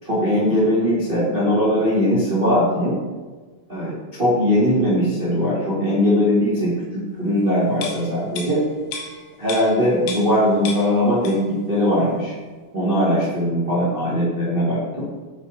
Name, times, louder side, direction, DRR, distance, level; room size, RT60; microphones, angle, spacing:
voice 1, 0.0-3.0 3.7-8.6 9.4-12.3 12.7-15.1, equal, 85° right, -9 dB, 0.5 m, -20 dB
sound 1, 7.7-10.4 10.6-11.6 11.9-12.1, left 4 dB, 80° left, 1.9 m, -34 dB
7.8 x 4.2 x 4.3 m, 1.3 s
omnidirectional pair, 4.9 m